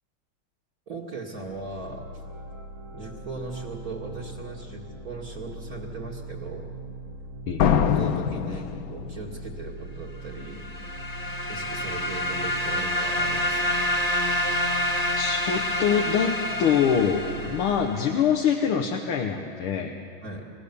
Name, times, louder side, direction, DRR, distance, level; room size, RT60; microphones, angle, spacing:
voice 1, 0.9-2.1 2.9-6.7 7.8-10.7 11.5-13.8 17.4-17.6 20.2-20.4, right 3 dB, 45° right, -1 dB, 2.3 m, -38 dB
sound 1, 1.4-17.8, right 2 dB, 70° right, 2.7 m, -41 dB
sound 2, 7.6-9.4, left 8 dB, 60° left, 1.0 m, -24 dB
sound 3, 10.4-18.1, left 1 dB, 20° left, 1.6 m, -28 dB
voice 2, 15.1-20.0, left 7 dB, 80° left, 3 dB, 1.9 m, -24 dB
29.5 x 16.5 x 6.9 m, 2.5 s
omnidirectional pair, 2.4 m